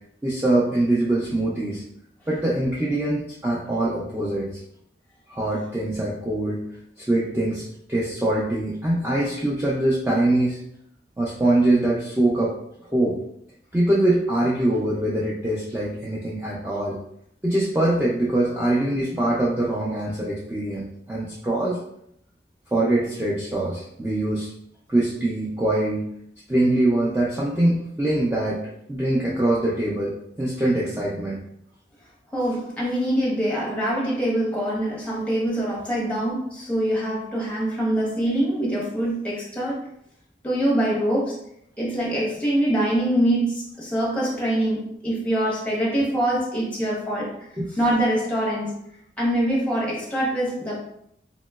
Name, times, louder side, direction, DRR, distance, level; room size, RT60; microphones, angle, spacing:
voice 1, 0.2-1.8 2.3-4.5 5.3-6.6 7.0-7.6 7.9-10.6 11.2-12.5 12.8-13.2 13.7-17.0 17.4-21.8 22.7-24.5 24.9-26.1 26.5-28.6 28.9-31.4 47.6-47.7, right 1 dB, 10° right, -6 dB, 0.3 m, -23 dB
voice 2, 32.3-39.8 40.4-41.4 41.8-47.4 47.8-48.8 49.2-50.8, right 1 dB, 5° left, -5 dB, 0.7 m, -24 dB
2.9 x 2.9 x 2.3 m, 0.73 s
head